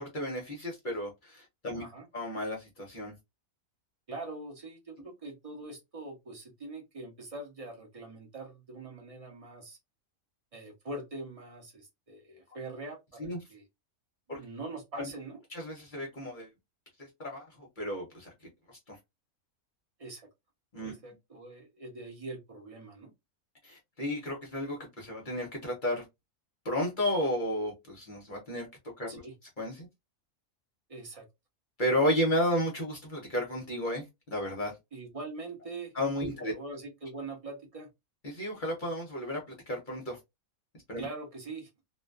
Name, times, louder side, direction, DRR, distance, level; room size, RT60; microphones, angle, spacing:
voice 1, 0.0-1.8 2.1-3.1 13.2-13.4 14.3-14.4 15.0-15.1 15.5-16.5 17.0-18.3 18.9-19.0 20.7-20.9 23.6-26.0 26.6-28.7 29.0-29.2 29.6-29.9 31.8-34.7 35.9-36.5 38.2-40.2 40.9-41.0, equal, 45° left, 0.7 m, -32 dB
voice 2, 1.7-2.1 4.1-9.8 10.5-13.6 14.3-15.4 20.0-20.2 20.8-23.1 29.1-29.3 30.9-31.3 34.9-35.9 36.3-37.9 41.0-41.7, right 2 dB, 35° right, 0.6 m, -43 dB
2.4 x 2.2 x 2.3 m
omnidirectional pair, 1.5 m